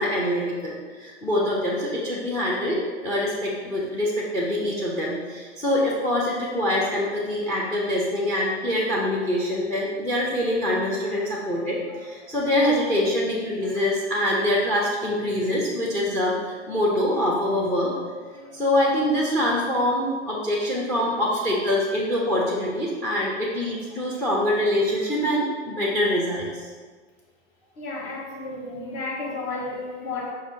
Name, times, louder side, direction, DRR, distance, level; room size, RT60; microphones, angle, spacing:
voice 1, 0.0-18.0 18.3-26.7, left 1 dB, 10° left, -3 dB, 0.4 m, -24 dB
voice 2, 27.8-30.3, left 3 dB, 45° left, -2 dB, 1.1 m, -32 dB
5.3 x 3.3 x 2.7 m, 1.5 s
hypercardioid pair, 105°, 35 cm